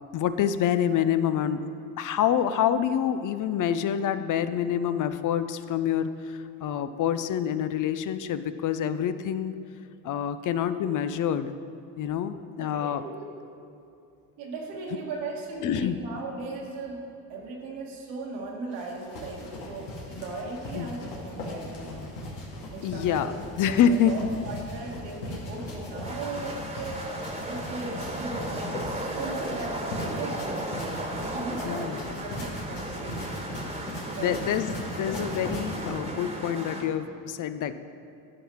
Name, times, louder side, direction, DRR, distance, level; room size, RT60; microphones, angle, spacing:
voice 1, 0.1-1.6 2.0-9.5 10.0-11.5 12.0-13.0 15.6-16.0 20.7-20.9 22.8-23.3 23.6-24.3 31.6-32.1 34.2-37.7, left 9 dB, 50° left, 12 dB, 0.5 m, -27 dB
voice 2, 12.6-13.3 14.4-17.0 17.3-22.1 22.7-27.0 27.5-30.4 31.1-33.2 34.0-34.4 34.9-35.0, right 3 dB, 85° right, -2 dB, 1.9 m, -37 dB
sound 1, 18.7-35.9, left 1 dB, 85° left, 2.0 m, -38 dB
sound 2, 25.8-36.9, right 1 dB, 15° right, 1.4 m, -35 dB
11.0 x 5.6 x 4.6 m, 2.6 s
supercardioid pair, 70°, 41 cm